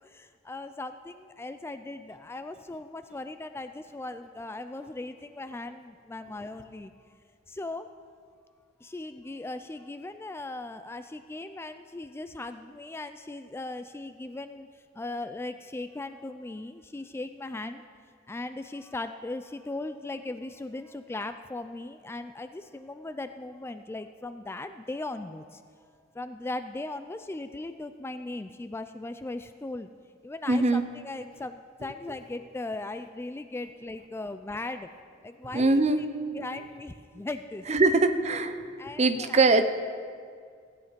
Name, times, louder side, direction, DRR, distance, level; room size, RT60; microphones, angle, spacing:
voice 1, 0.0-6.9 7.5-7.9 8.8-17.9 18.3-25.6 26.1-29.9 30.2-34.9 35.2-36.1 36.3-37.7 38.8-39.4, left 2 dB, 15° left, 10 dB, 0.3 m, -38 dB
voice 2, 30.5-30.8 35.5-36.0 37.7-38.6 39.0-39.6, right 3 dB, 35° right, 10 dB, 0.7 m, -22 dB
16.0 x 9.6 x 5.1 m, 2.1 s
head